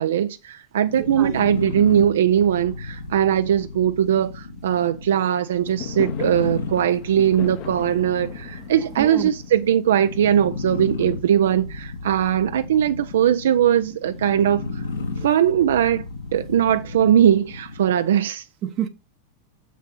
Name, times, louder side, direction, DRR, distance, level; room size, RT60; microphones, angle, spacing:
voice 1, 0.0-14.6 15.2-16.0 16.3-18.4, right 9 dB, 60° right, 0.5 m, -20 dB
sound 1, 0.8-18.1, left 3 dB, 70° left, 2.0 m, -34 dB
voice 2, 1.0-1.4 8.8-9.3 15.2-15.3 18.6-18.9, right 11 dB, 35° right, 0.8 m, -29 dB
Fireworks, 5.6-10.9, left 11 dB, 40° left, 0.9 m, -38 dB
7.2 x 6.1 x 4.0 m
figure-of-eight pair, 90°, 0 cm